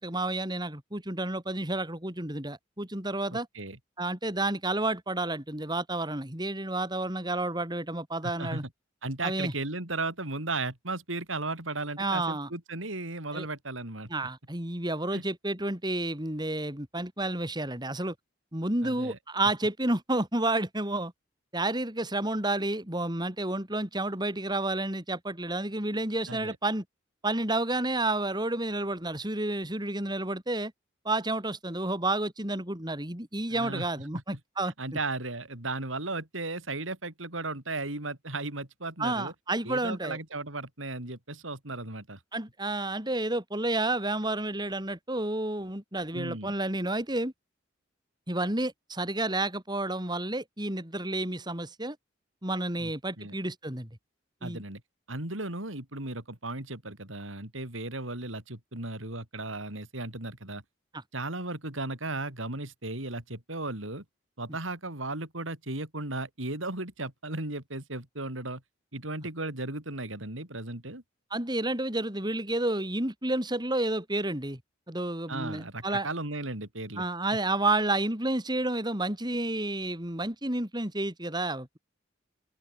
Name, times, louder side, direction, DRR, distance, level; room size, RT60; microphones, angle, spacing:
voice 1, 0.0-3.5 4.0-8.6 9.2-9.5 12.0-12.5 13.3-13.5 14.1-18.1 18.5-21.1 21.5-26.8 27.2-30.7 31.0-34.7 39.0-40.2 42.3-47.3 48.3-52.0 52.4-53.9 54.4-54.6 71.3-74.6 74.9-76.1 77.0-81.8, right 2 dB, 20° right, 4.8 m, -30 dB
voice 2, 3.3-3.8 8.2-8.6 9.0-14.1 15.1-15.2 18.8-19.2 26.3-26.6 33.5-33.9 34.1-34.4 34.7-39.3 39.6-42.2 46.1-46.5 52.8-52.9 53.2-53.3 54.4-54.8 55.1-60.6 61.1-64.0 64.4-68.6 68.9-71.0 75.3-77.0, right 2 dB, 90° right, 5.2 m, -36 dB
head